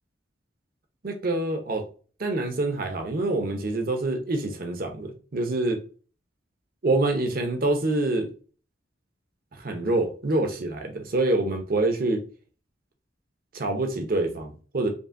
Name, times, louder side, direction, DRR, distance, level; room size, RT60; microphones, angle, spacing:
voice 1, 1.0-1.8 2.2-5.8 6.8-8.3 9.6-12.2 13.5-14.9, right 2 dB, 50° right, 0.8 m, -26 dB
5.3 x 2.7 x 2.5 m
head